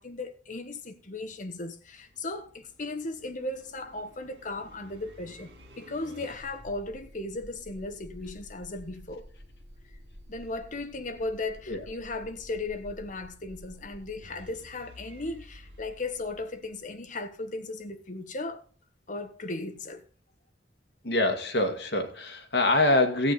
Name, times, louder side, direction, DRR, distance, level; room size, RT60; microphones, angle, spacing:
voice 1, 0.0-5.5 5.8-9.2 10.3-18.6 19.1-20.0, left 2 dB, 45° left, 1.2 m, -36 dB
sound 1, 1.3-17.2, equal, 70° right, 2.2 m, -51 dB
voice 2, 21.0-23.3, left 2 dB, 65° left, 2.0 m, -25 dB
14.0 x 8.4 x 4.1 m
head